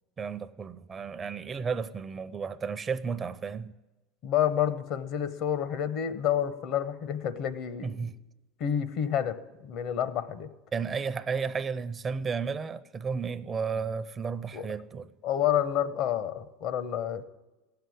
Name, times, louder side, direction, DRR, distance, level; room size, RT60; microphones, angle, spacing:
voice 1, 0.2-3.7 7.8-8.1 10.7-15.1, right 5 dB, 30° right, 0.6 m, -33 dB
voice 2, 4.2-8.1 8.6-10.5 14.5-14.7 15.2-17.2, left 10 dB, 60° left, 0.9 m, -29 dB
15.5 x 6.8 x 9.5 m
hypercardioid pair, 95°, 0 cm